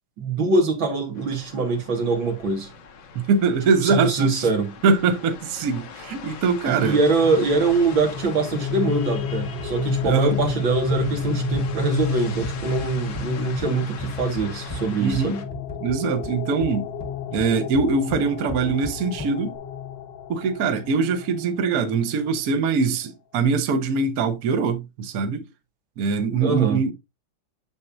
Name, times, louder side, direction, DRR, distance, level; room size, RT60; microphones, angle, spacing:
voice 1, 0.2-2.7 3.8-4.7 6.7-15.4 26.4-26.8, right 3 dB, 80° right, 2.4 m, -23 dB
sound 1, 1.1-15.4, left 6 dB, 90° left, 1.9 m, -41 dB
voice 2, 3.1-4.5 4.8-7.0 10.0-10.4 15.0-15.4 15.8-16.9 17.3-19.5 20.3-25.4 26.0-26.9, right 4 dB, 55° right, 1.2 m, -22 dB
sound 2, 7.0-21.7, left 5 dB, 70° left, 1.6 m, -31 dB
sound 3, 9.6-19.6, left 2 dB, 20° left, 0.7 m, -38 dB
7.1 x 6.6 x 2.5 m
omnidirectional pair, 2.1 m